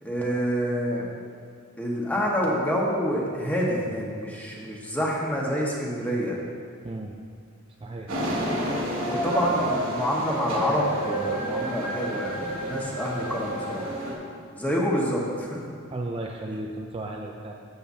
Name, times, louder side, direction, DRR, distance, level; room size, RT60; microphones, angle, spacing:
voice 1, 0.0-1.1 1.8-6.4 9.1-13.9 14.5-15.6, equal, 10° left, -4 dB, 1.5 m, -27 dB
voice 2, 6.8-7.2 7.8-8.1 15.9-17.6, right 2 dB, 25° right, 0 dB, 0.5 m, -34 dB
sound 1, 8.1-14.1, equal, 80° right, 2.3 m, -29 dB
13.5 x 8.0 x 2.8 m, 2.2 s
head